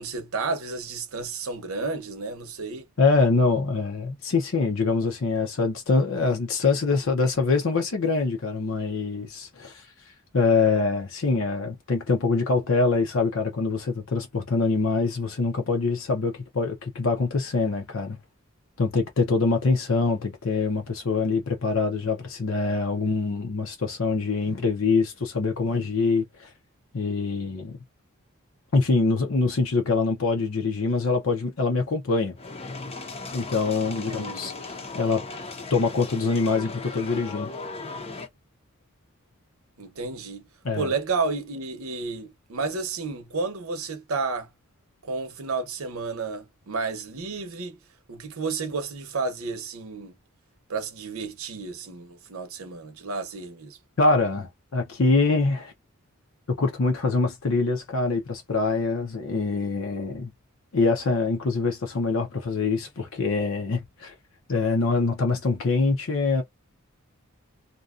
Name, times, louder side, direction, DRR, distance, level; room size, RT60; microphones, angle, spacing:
voice 1, 0.0-2.9 34.0-34.4 39.8-40.5 40.7-44.5 45.0-47.8 48.1-50.1 50.7-53.8, right 4 dB, 85° right, 0.8 m, -31 dB
voice 2, 3.0-9.8 10.3-18.2 18.8-26.5 26.9-27.8 28.7-32.4 33.3-35.2 35.7-37.5 40.6-40.9 54.0-55.7 56.5-60.3 60.7-64.1 64.5-66.4, left 3 dB, 65° left, 0.7 m, -24 dB
sound 1, 32.4-38.3, left 3 dB, 30° left, 0.6 m, -37 dB
2.6 x 2.3 x 2.4 m
head